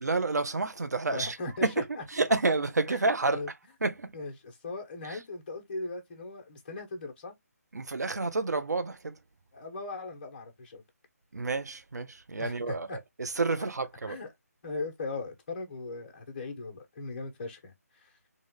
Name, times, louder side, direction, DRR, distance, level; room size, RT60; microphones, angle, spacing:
voice 1, 0.0-1.4 1.6-1.8 2.1-3.4 3.8-4.1 5.1-5.2 7.7-9.2 11.3-14.2, right 3 dB, 80° right, 0.8 m, -29 dB
voice 2, 1.1-2.0 2.9-3.0 3.3-3.5 4.1-7.3 9.5-10.8 12.4-13.0 14.1-14.3 14.6-18.1, left 3 dB, 35° left, 1.2 m, -38 dB
3.7 x 2.5 x 3.6 m
figure-of-eight pair, 155°, 9 cm